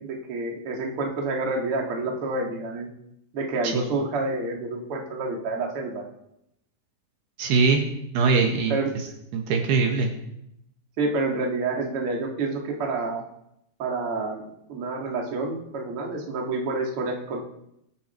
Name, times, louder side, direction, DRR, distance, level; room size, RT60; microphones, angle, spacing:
voice 1, 0.0-2.9 3.3-6.0 8.7-8.9 11.0-13.2 13.8-14.4 14.7-17.4, right 3 dB, 40° right, 0 dB, 2.4 m, -28 dB
voice 2, 7.4-7.8 8.1-8.8 9.3-10.1, right 4 dB, 70° right, 2 dB, 3.3 m, -21 dB
21.5 x 9.3 x 4.5 m, 0.79 s
omnidirectional pair, 5.0 m